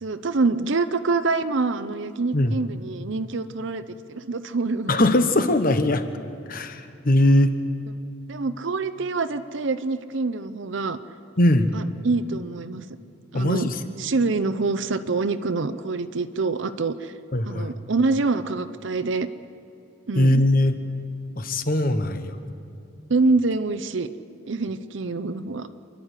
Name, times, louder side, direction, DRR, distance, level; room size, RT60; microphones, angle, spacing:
voice 1, 0.0-3.8 4.1-4.9 8.3-11.0 11.7-12.8 13.3-13.7 14.0-17.1 17.5-19.3 20.1-20.4 23.1-24.1 24.5-25.7, right 3 dB, 60° right, 11 dB, 0.6 m, -25 dB
voice 2, 4.9-6.0 6.5-7.5 11.4-11.7 13.3-13.8 17.3-17.7 20.2-20.7 21.4-22.3, left 1 dB, 45° left, 9 dB, 1.1 m, -20 dB
28.5 x 11.5 x 8.2 m, 2.5 s
head